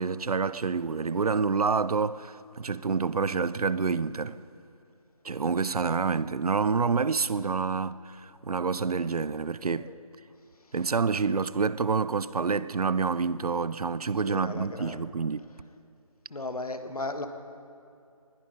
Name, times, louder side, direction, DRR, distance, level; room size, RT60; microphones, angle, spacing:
voice 1, 0.0-4.4 5.2-9.9 10.7-15.4, right 5 dB, 85° right, 0.6 m, -28 dB
voice 2, 14.2-15.0 16.3-17.3, left 2 dB, 80° left, 1.5 m, -35 dB
20.0 x 13.0 x 5.1 m
figure-of-eight pair, 175°, 19 cm